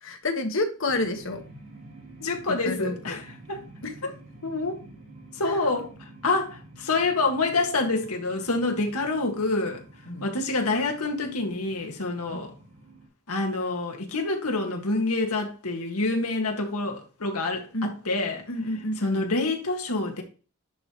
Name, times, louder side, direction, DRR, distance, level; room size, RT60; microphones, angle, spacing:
voice 1, 0.0-1.4 2.6-3.2 3.8-4.0 5.4-5.8 10.1-10.3 12.3-12.4 17.7-17.9 18.5-19.2, left 2 dB, 60° left, 1.4 m, -30 dB
sound 1, 0.8-13.1, right 2 dB, 85° right, 4.1 m, -49 dB
voice 2, 2.2-3.2 3.5-3.6 4.4-4.8 5.4-5.9 6.2-9.8 10.2-12.5 13.3-18.4 19.0-20.2, left 3 dB, 85° left, 1.9 m, -27 dB
10.5 x 4.8 x 3.1 m
head